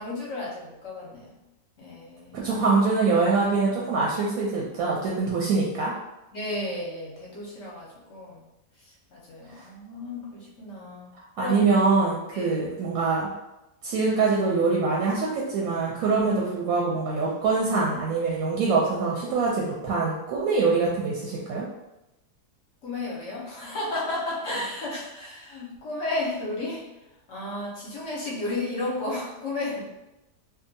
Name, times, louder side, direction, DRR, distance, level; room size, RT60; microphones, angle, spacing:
voice 1, 0.0-1.4 1.8-2.4 6.3-8.5 9.1-11.1 11.4-11.6 12.3-12.6 22.8-26.8 27.3-29.8, left 2 dB, 55° left, -4 dB, 0.9 m, -33 dB
voice 2, 2.3-5.9 11.4-13.3 13.8-21.6, right 4 dB, 70° right, -4 dB, 0.9 m, -24 dB
2.7 x 2.2 x 2.6 m, 0.94 s
omnidirectional pair, 1.8 m